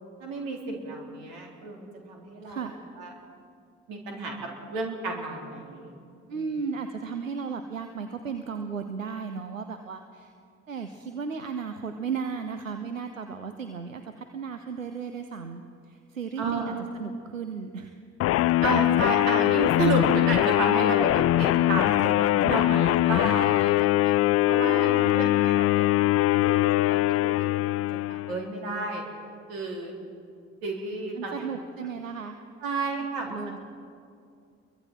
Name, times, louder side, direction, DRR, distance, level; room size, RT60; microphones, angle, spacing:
voice 1, 0.2-2.6 3.0-3.1 3.9-4.3 4.7-5.9 6.3-6.4 16.4-16.8 18.6-24.1 24.5-27.0 27.4-29.0 29.5-29.9 30.6-31.4 32.6-33.6, right 3 dB, 65° right, 1 dB, 3.8 m, -31 dB
voice 2, 6.3-10.3 10.7-17.9 24.5-25.4 31.2-32.4 33.2-33.6, right 5 dB, 90° right, 8 dB, 0.8 m, -35 dB
sound 1, 18.2-28.4, left 16 dB, 40° left, 0.4 m, -22 dB
29.5 x 23.0 x 4.4 m, 2.4 s
figure-of-eight pair, 45°, 39 cm